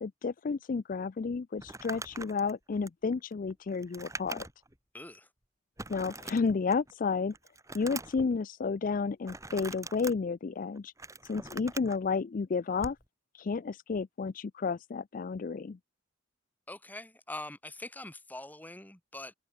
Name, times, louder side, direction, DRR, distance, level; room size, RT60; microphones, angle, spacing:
voice 1, 0.0-4.5 5.9-7.3 7.7-10.9 11.2-13.0 13.3-15.8, left 4 dB, 45° left, 0.4 m, -31 dB
Crumpling crinkling, 1.6-4.8 5.1-5.2 5.8-6.9 7.3-8.3 9.2-10.1 10.8-12.0 12.8-13.0, right 3 dB, 15° right, 3.9 m, -43 dB
voice 2, 4.9-5.3 16.7-19.3, left 1 dB, 10° left, 5.1 m, -43 dB
head